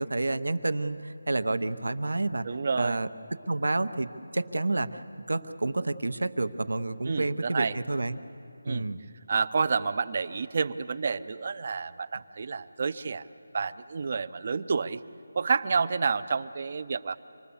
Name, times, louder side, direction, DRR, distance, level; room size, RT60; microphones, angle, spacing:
voice 1, 0.0-2.4 2.8-3.1 3.5-5.0 5.3-8.2 8.7-9.0, right 2 dB, 80° right, 11 dB, 0.9 m, -29 dB
voice 2, 2.4-3.0 7.1-7.8 8.6-8.9 9.3-13.3 13.5-15.0 15.3-17.2, right 5 dB, 35° right, 11 dB, 0.6 m, -29 dB
26.0 x 20.0 x 7.1 m, 3.0 s
figure-of-eight pair, 170°, 0 cm